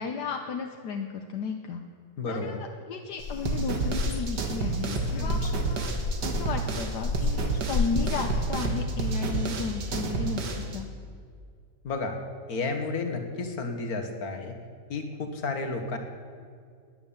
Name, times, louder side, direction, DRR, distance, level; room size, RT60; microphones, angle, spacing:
voice 1, 0.0-1.8 2.3-5.9 6.2-10.9, left 5 dB, 75° left, 4 dB, 1.5 m, -34 dB
voice 2, 2.2-2.6 5.1-5.5 11.8-12.2 12.5-14.6 14.9-16.0, left 3 dB, 60° left, 5 dB, 2.0 m, -32 dB
sound 1, 3.2-8.5, left 4 dB, 45° left, 1.0 m, -32 dB
sound 2, 3.4-10.8, right 4 dB, 75° right, 2.1 m, -30 dB
20.5 x 9.4 x 7.2 m, 2.2 s
omnidirectional pair, 1.8 m